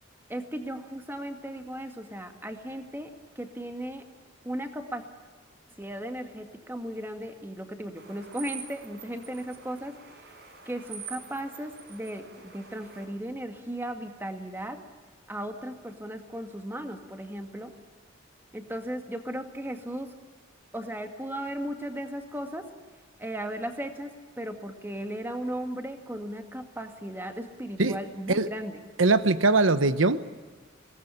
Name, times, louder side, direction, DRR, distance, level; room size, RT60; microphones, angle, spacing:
voice 1, 0.3-3.1 3.4-4.0 4.4-5.0 5.8-10.0 10.7-14.8 15.3-17.7 18.5-20.1 20.7-22.7 23.2-28.8, right 1 dB, 10° right, 6 dB, 2.0 m, -36 dB
sound 1, 8.0-13.1, right 7 dB, 55° right, 4.8 m, -45 dB
voice 2, 29.0-30.3, right 3 dB, 85° right, 13 dB, 1.0 m, -22 dB
22.5 x 18.5 x 10.0 m, 1.4 s
head